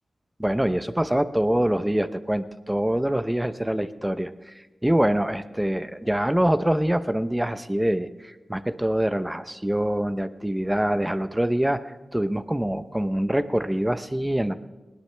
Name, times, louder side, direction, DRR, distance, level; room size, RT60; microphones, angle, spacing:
voice 1, 0.4-11.8 12.1-14.5, right 1 dB, 5° right, 12 dB, 0.7 m, -25 dB
20.0 x 19.0 x 3.3 m, 1.1 s
wide cardioid pair, 115°, 0 cm